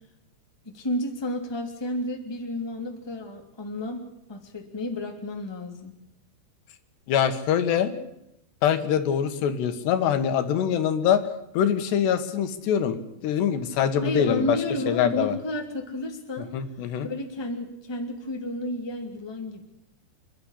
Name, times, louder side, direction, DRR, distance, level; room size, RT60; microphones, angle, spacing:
voice 1, 0.6-5.9 14.0-16.5 17.0-19.6, left 1 dB, 10° left, 3 dB, 2.1 m, -31 dB
voice 2, 7.1-8.0 8.6-11.2 11.5-13.0 13.2-14.6 14.9-15.4 16.5-17.1, left 8 dB, 75° left, 9 dB, 3.6 m, -24 dB
28.0 x 11.5 x 10.0 m, 0.82 s
omnidirectional pair, 4.9 m